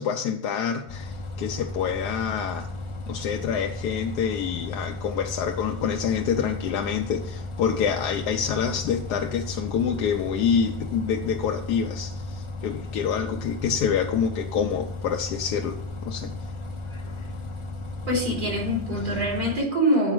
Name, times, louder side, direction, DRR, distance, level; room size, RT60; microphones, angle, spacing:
voice 1, 0.0-2.7 3.1-15.8 16.0-16.3, left 7 dB, 90° left, 3 dB, 1.2 m, -27 dB
Bus, 0.9-19.6, left 2 dB, 50° left, 0.3 m, -35 dB
voice 2, 18.1-20.1, equal, 70° right, -3 dB, 3.7 m, -24 dB
7.8 x 4.8 x 6.1 m, 0.71 s
omnidirectional pair, 1.7 m